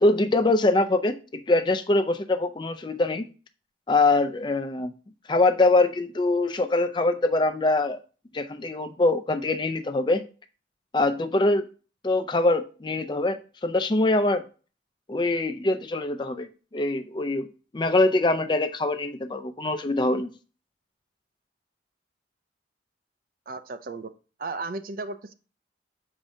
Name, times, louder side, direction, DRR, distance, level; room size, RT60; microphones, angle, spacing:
voice 1, 0.0-3.3 3.9-4.9 5.3-8.0 8.3-10.2 10.9-11.7 12.0-14.4 15.1-17.5 17.7-20.3, left 2 dB, 25° left, 8 dB, 0.4 m, -23 dB
voice 2, 23.5-24.1 24.4-25.3, right 3 dB, 50° right, 11 dB, 0.4 m, -34 dB
7.2 x 4.9 x 2.7 m, 0.36 s
head